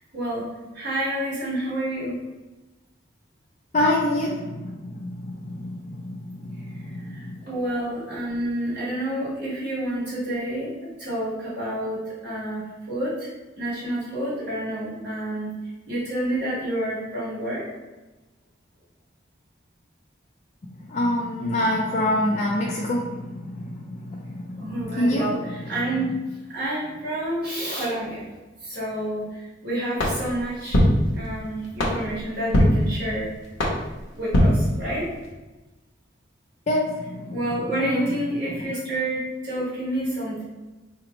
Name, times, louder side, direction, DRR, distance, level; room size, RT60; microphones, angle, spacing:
voice 1, 0.1-0.4 0.7-2.2 6.7-13.3 13.6-15.5 15.9-17.6 24.6-26.1 26.5-28.2 28.6-30.8 31.1-33.3 34.1-35.0 37.3-40.4, right 1 dB, 60° right, -9 dB, 1.2 m, -29 dB
voice 2, 3.7-7.4 20.9-25.3 36.7-37.4 37.8-38.1, left 1 dB, 35° left, -3 dB, 0.3 m, -26 dB
sound 1, 30.0-35.3, equal, 75° left, 0.8 m, -23 dB
2.9 x 2.1 x 3.8 m, 1.1 s
head